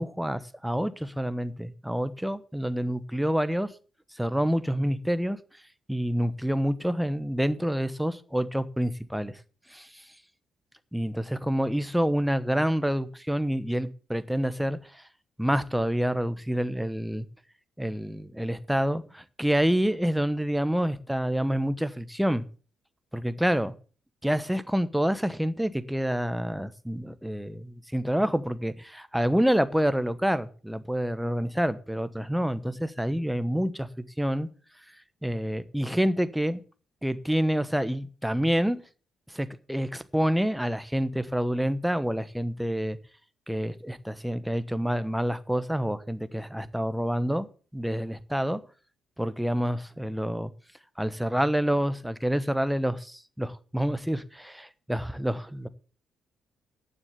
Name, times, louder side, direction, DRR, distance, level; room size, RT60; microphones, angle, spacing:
voice 1, 0.0-3.7 4.1-5.4 5.9-9.4 9.7-10.1 10.9-15.0 15.4-17.2 17.8-22.4 23.1-23.7 24.2-34.5 35.2-36.6 37.0-38.8 39.3-43.0 43.5-47.5 47.7-48.6 49.2-50.5 51.0-53.0 53.4-55.7, equal, 5° right, 1.0 m, -27 dB
9.5 x 7.2 x 7.9 m
cardioid pair, 90°, 0 cm